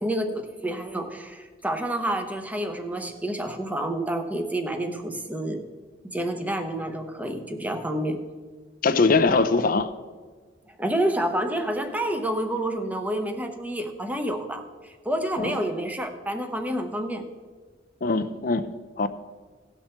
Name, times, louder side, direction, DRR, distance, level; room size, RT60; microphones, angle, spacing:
voice 1, 0.0-5.6 6.0-8.2 10.8-17.3, right 1 dB, 10° right, 0.8 m, -29 dB
voice 2, 8.8-9.9 15.4-15.6 18.0-18.7 19.0-19.1, left 3 dB, 50° left, 0.6 m, -21 dB
17.0 x 6.0 x 4.4 m
head